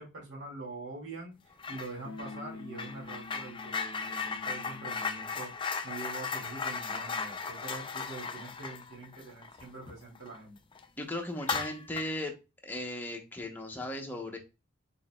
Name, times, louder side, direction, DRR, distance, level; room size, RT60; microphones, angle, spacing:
voice 1, 0.0-10.6, right 2 dB, 60° right, -4 dB, 2.3 m, -44 dB
sound 1, 1.6-1.9 2.2-10.4 10.7-10.8 11.4-12.2, left 5 dB, 25° left, 0.4 m, -37 dB
sound 2, 2.0-5.2, left 3 dB, 70° left, 0.7 m, -47 dB
voice 2, 11.0-12.3 12.6-14.4, left 1 dB, 10° left, 2 dB, 0.8 m, -37 dB
4.7 x 4.0 x 2.3 m, 0.28 s
head